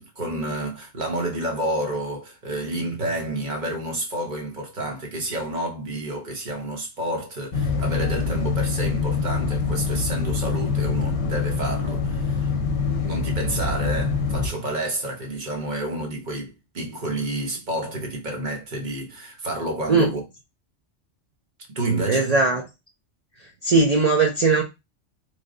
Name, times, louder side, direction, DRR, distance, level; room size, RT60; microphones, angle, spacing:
voice 1, 0.0-12.5 13.1-20.2 21.7-22.4, right 1 dB, 40° right, 1.0 m, -29 dB
sound 1, 7.5-14.5, left 5 dB, 65° left, 1.0 m, -25 dB
voice 2, 22.1-22.6 23.6-24.6, right 3 dB, 65° right, 0.4 m, -19 dB
3.4 x 2.1 x 3.6 m
omnidirectional pair, 1.3 m